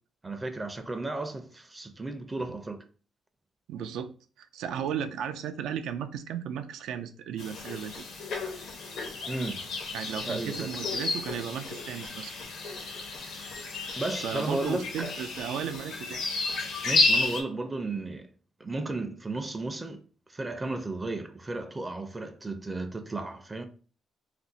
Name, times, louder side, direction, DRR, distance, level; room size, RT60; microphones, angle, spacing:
voice 1, 0.2-2.8 9.3-9.6 10.3-10.7 14.0-15.1 16.8-18.3 18.6-23.6, right 2 dB, 20° right, 0.4 m, -34 dB
voice 2, 3.7-8.0 9.9-12.3 14.2-16.2, right 8 dB, 85° right, 0.3 m, -35 dB
sound 1, 7.4-17.4, left 3 dB, 70° left, 0.7 m, -32 dB
2.5 x 2.1 x 3.8 m
cardioid pair, 90°, 0 cm